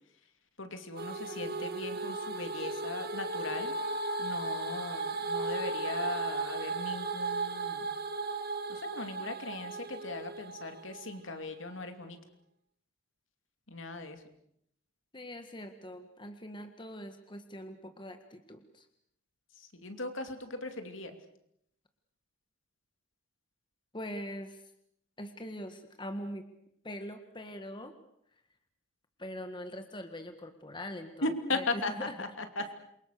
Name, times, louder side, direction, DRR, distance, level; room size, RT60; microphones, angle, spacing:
voice 1, 0.6-3.7 4.2-7.9 8.7-12.2 13.7-14.2 19.7-21.1 31.2-32.7, left 2 dB, 70° left, 7 dB, 2.8 m, -38 dB
sound 1, 1.0-11.2, right 3 dB, 50° right, 2.1 m, -36 dB
voice 2, 15.1-18.8 23.9-24.6 25.2-26.4 26.8-27.9 29.2-32.2 32.6-32.7, equal, 25° left, 7 dB, 1.7 m, -42 dB
28.0 x 23.5 x 6.7 m, 0.75 s
head